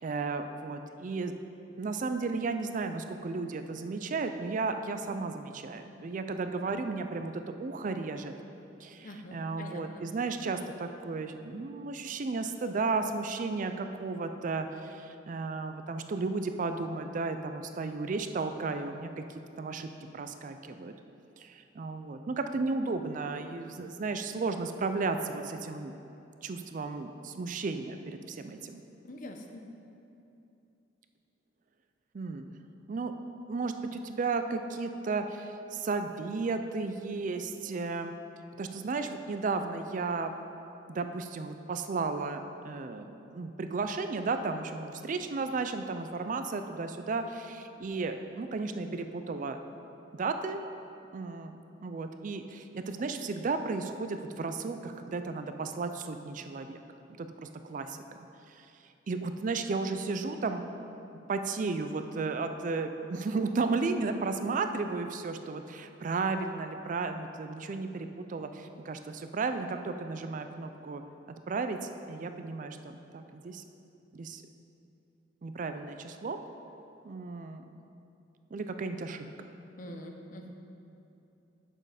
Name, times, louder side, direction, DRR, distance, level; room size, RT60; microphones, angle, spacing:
voice 1, 0.0-1.3 1.8-8.3 8.8-19.2 19.6-20.9 21.4-25.9 26.4-28.8 32.1-32.5 32.9-33.1 33.5-38.1 38.6-40.3 40.9-49.6 50.1-50.6 51.1-56.8 57.2-58.0 58.5-58.7 59.1-60.9 61.3-71.0 71.5-73.6 74.1-74.4 75.4-76.4 77.0-77.6 78.5-79.5, right 4 dB, 45° right, 8 dB, 0.4 m, -34 dB
voice 2, 9.0-9.8 29.0-29.6 79.8-80.5, left 1 dB, 45° left, 3 dB, 0.7 m, -44 dB
7.6 x 6.4 x 4.9 m, 2.8 s
head